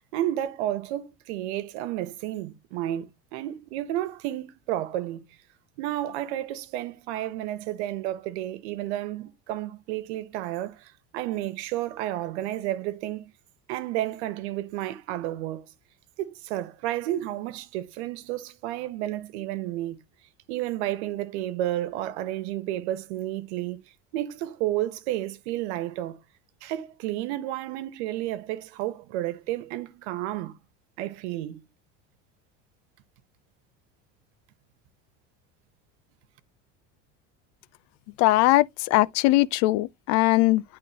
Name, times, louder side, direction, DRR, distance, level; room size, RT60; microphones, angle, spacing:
voice 1, 0.1-3.1 3.3-5.2 5.8-13.3 13.7-15.7 16.2-20.0 20.5-23.8 24.1-26.2 26.6-30.5 31.0-31.6, right 14 dB, 90° right, 1.2 m, -31 dB
voice 2, 38.2-38.7 38.9-40.6, left 18 dB, 55° left, 0.5 m, -20 dB
11.0 x 3.7 x 2.8 m
cardioid pair, 155°, 33 cm